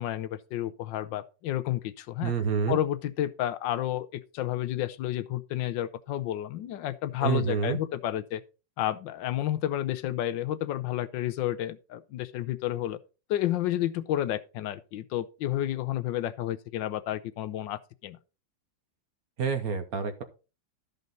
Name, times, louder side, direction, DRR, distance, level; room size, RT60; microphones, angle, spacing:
voice 1, 0.0-2.3 2.7-8.4 8.8-13.0 13.3-18.2, left 13 dB, 80° left, 1.3 m, -31 dB
voice 2, 2.2-2.8 7.2-7.8 19.4-20.2, right 6 dB, 55° right, 1.3 m, -28 dB
12.5 x 5.3 x 4.0 m
omnidirectional pair, 2.0 m